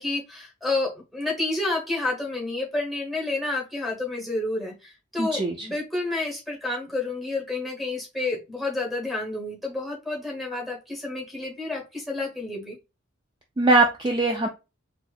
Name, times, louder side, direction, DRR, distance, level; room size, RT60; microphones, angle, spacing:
voice 1, 0.0-12.8, left 2 dB, ahead, -2 dB, 1.1 m, -30 dB
voice 2, 5.2-5.7 13.6-14.5, right 2 dB, 20° right, 2 dB, 0.3 m, -21 dB
4.1 x 2.5 x 2.3 m, 0.27 s
head